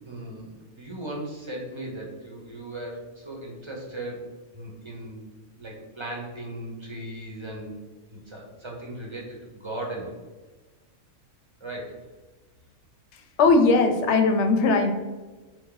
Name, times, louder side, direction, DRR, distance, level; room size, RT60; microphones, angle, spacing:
voice 1, 0.1-4.3 4.5-5.2 5.5-7.8 8.1-10.1 11.6-12.0, right 1 dB, 25° right, -2 dB, 0.8 m, -37 dB
voice 2, 13.4-14.9, left 3 dB, 65° left, 5 dB, 0.8 m, -19 dB
4.5 x 2.6 x 3.8 m, 1.2 s
omnidirectional pair, 1.4 m